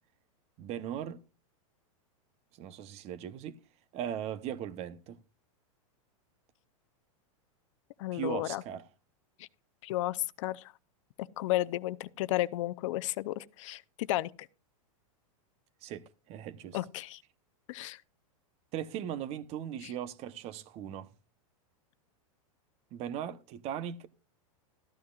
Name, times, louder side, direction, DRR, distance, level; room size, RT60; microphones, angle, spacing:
voice 1, 0.6-1.2 2.6-3.6 3.9-5.2 8.1-8.8 15.8-16.8 18.7-21.1 22.9-24.1, right 10 dB, 35° right, 0.9 m, -38 dB
voice 2, 8.0-8.6 9.8-10.7 11.4-14.3 16.7-17.2 17.7-18.0 19.8-19.9, left 16 dB, 60° left, 0.6 m, -33 dB
14.0 x 12.5 x 2.4 m
supercardioid pair, 140°, 18 cm